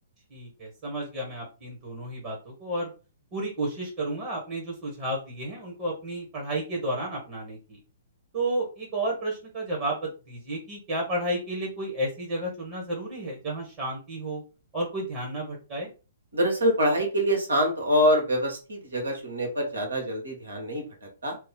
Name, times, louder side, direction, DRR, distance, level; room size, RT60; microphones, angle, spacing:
voice 1, 0.3-2.9 3.3-7.8 8.3-14.4 14.7-15.9, right 1 dB, 35° right, -3 dB, 1.3 m, -32 dB
voice 2, 16.3-21.4, equal, 75° right, 2 dB, 1.3 m, -25 dB
3.1 x 2.0 x 3.6 m, 0.33 s
figure-of-eight pair, 120°, 0 cm